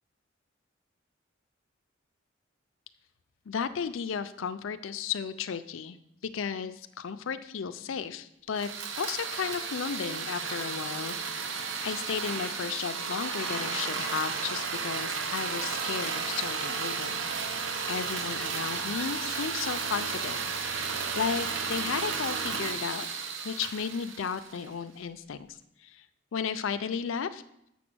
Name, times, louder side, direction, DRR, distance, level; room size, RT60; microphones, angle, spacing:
voice 1, 3.5-6.0 6.2-8.7 9.0-11.5 11.8-17.2 17.9-23.1 23.4-26.1 26.3-27.4, left 6 dB, 75° left, 11 dB, 0.5 m, -34 dB
sound 1, 8.5-24.7, right 5 dB, 70° right, 0.9 m, -33 dB
7.1 x 6.1 x 6.1 m, 0.79 s
head